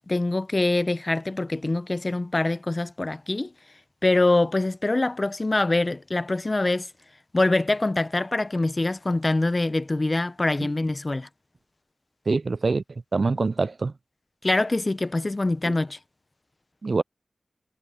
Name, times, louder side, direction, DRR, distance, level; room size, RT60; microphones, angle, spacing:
voice 1, 0.1-3.5 4.0-6.9 7.3-11.3 14.4-16.0, left 2 dB, 40° left, 0.7 m, -24 dB
voice 2, 12.3-12.8 13.1-13.9 16.8-17.0, right 3 dB, 65° right, 0.3 m, -24 dB
cardioid pair, 50°, 0 cm